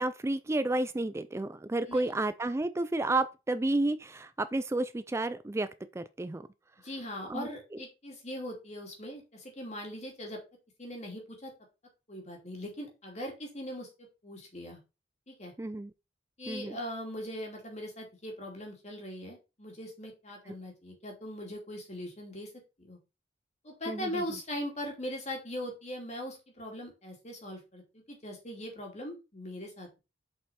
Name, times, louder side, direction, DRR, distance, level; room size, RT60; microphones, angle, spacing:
voice 1, 0.0-6.5 7.2-7.5 15.6-15.9 16.5-16.8 23.9-24.4, right 2 dB, 15° right, 0.3 m, -31 dB
voice 2, 6.8-10.4 10.8-11.5 12.1-14.8 15.3-15.5 16.4-22.5 22.8-23.0 23.6-30.0, equal, 40° left, 2.9 m, -40 dB
7.3 x 5.4 x 4.2 m
head